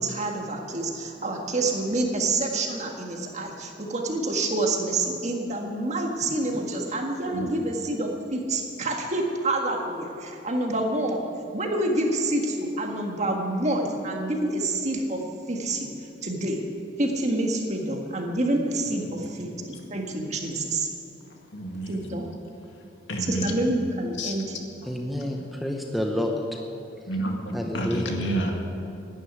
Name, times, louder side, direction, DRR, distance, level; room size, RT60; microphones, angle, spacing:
voice 1, 0.0-11.2 11.5-15.2 15.5-15.9 16.2-16.6 17.0-19.5 19.9-20.9 21.9-22.2 23.3-24.6, right 2 dB, 35° right, 1 dB, 1.7 m, -27 dB
voice 2, 21.5-22.0 23.1-23.5 24.2-24.3 27.1-28.5, right 1 dB, 75° left, 1 dB, 2.1 m, -29 dB
voice 3, 24.9-26.4 27.5-28.1, left 1 dB, ahead, 1 dB, 0.9 m, -29 dB
11.0 x 10.0 x 9.7 m, 2.7 s
head